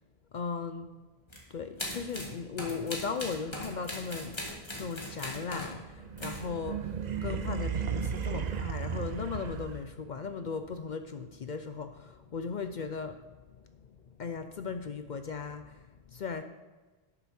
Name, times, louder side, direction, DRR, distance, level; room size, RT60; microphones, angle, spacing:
voice 1, 0.3-0.9 1.5-4.4 4.7-6.9 7.2-13.2 14.2-16.4, left 5 dB, 55° left, 8 dB, 0.6 m, -37 dB
sound 1, 1.3-1.4 1.8-5.8 6.2-6.5, left 1 dB, 25° left, 1.8 m, -39 dB
sound 2, 5.9-10.1, right 7 dB, 50° right, 0.7 m, -35 dB
12.0 x 6.9 x 4.3 m, 1.2 s
omnidirectional pair, 1.1 m